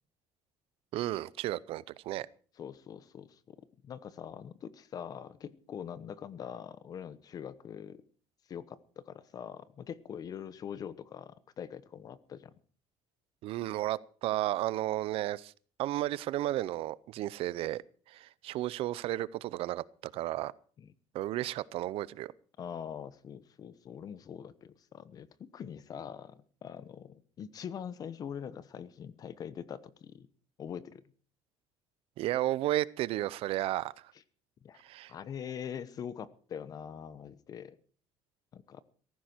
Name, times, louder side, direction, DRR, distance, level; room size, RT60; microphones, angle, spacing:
voice 1, 0.9-2.3 13.4-15.5 15.8-17.8 18.1-19.8 20.1-20.5 21.1-22.3 32.2-34.1 34.8-35.1, right 15 dB, 55° right, 20 dB, 0.6 m, -33 dB
voice 2, 2.6-3.6 3.8-8.0 8.5-12.5 20.8-20.9 22.6-30.3 30.6-31.0 34.6-34.8 35.1-37.8 38.5-38.8, left 8 dB, 35° left, 16 dB, 1.0 m, -43 dB
17.5 x 14.5 x 4.5 m, 0.42 s
cardioid pair, 170°, 11 cm